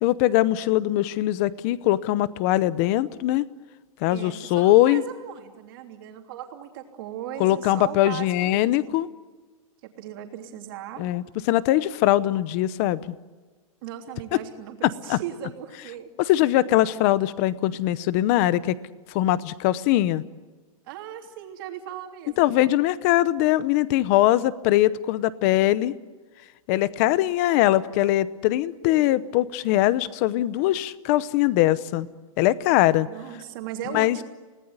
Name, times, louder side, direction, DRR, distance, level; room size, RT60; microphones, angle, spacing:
voice 1, 0.0-3.4 4.0-5.0 7.4-9.1 11.0-13.1 14.8-15.2 16.2-18.8 19.1-20.2 22.4-25.9 26.7-32.1 32.4-33.1 33.9-34.2, left 15 dB, 25° left, 18 dB, 0.7 m, -21 dB
voice 2, 4.1-9.0 9.8-11.0 13.8-16.1 20.9-22.5 33.1-34.2, right 10 dB, 35° right, 4 dB, 3.2 m, -38 dB
29.5 x 19.0 x 9.6 m, 1.3 s
supercardioid pair, 175°, 19 cm